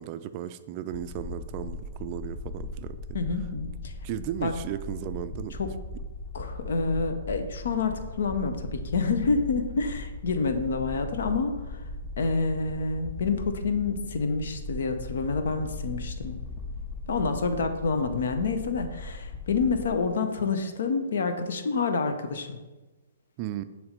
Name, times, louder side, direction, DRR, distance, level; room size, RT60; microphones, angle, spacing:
voice 1, 0.0-3.0 4.0-5.5 23.4-23.6, right 11 dB, 35° right, 11 dB, 0.4 m, -35 dB
sound 1, 0.9-19.9, left 2 dB, 35° left, 0.9 m, -38 dB
voice 2, 3.1-3.9 4.4-4.5 5.6-5.7 6.3-11.8 12.2-16.4 17.1-22.6, left 4 dB, 65° left, 8 dB, 0.8 m, -28 dB
7.0 x 3.2 x 5.2 m, 1.2 s
figure-of-eight pair, 125°, 0 cm